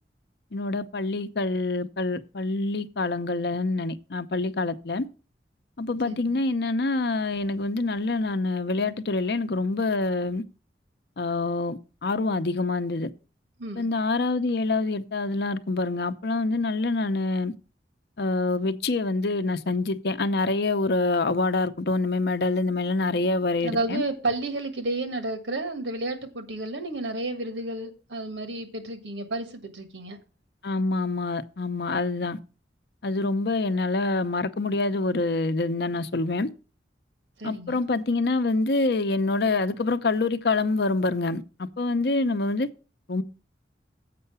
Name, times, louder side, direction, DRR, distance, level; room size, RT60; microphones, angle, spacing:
voice 1, 0.5-5.1 5.8-10.4 11.2-13.1 13.8-17.5 18.2-24.0 30.6-32.4 33.0-36.5 37.4-42.7 43.1-43.2, left 3 dB, 60° left, 0.7 m, -26 dB
voice 2, 6.0-6.4 13.6-13.9 23.6-30.2 37.4-37.8, right 2 dB, 85° right, 1.6 m, -31 dB
7.6 x 5.6 x 6.9 m
head